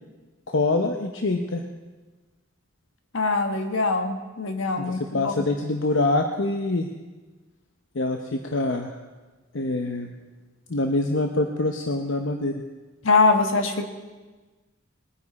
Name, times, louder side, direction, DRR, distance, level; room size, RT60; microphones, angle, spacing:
voice 1, 0.5-1.6 4.8-6.9 7.9-8.9 9.5-10.1 10.7-12.6, left 2 dB, 70° left, 4 dB, 0.8 m, -25 dB
voice 2, 3.1-5.3 13.0-13.9, left 3 dB, 85° left, 5 dB, 1.5 m, -23 dB
20.5 x 9.6 x 4.2 m, 1.3 s
head